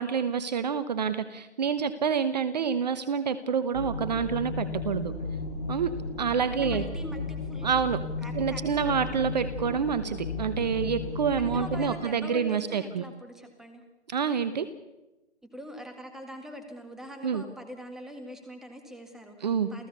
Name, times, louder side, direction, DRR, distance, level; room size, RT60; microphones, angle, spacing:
voice 1, 0.0-5.1 5.7-6.8 7.6-8.0 8.3-13.0 14.1-14.7 17.2-17.4 19.4-19.7, right 6 dB, 40° right, 13 dB, 1.1 m, -28 dB
sound 1, 3.7-11.9, left 3 dB, 65° left, 7.8 m, -34 dB
voice 2, 6.5-7.7 8.2-9.3 11.4-13.8 15.4-19.9, equal, ahead, 6 dB, 1.8 m, -43 dB
29.0 x 16.0 x 6.9 m, 1.0 s
figure-of-eight pair, 150°, 34 cm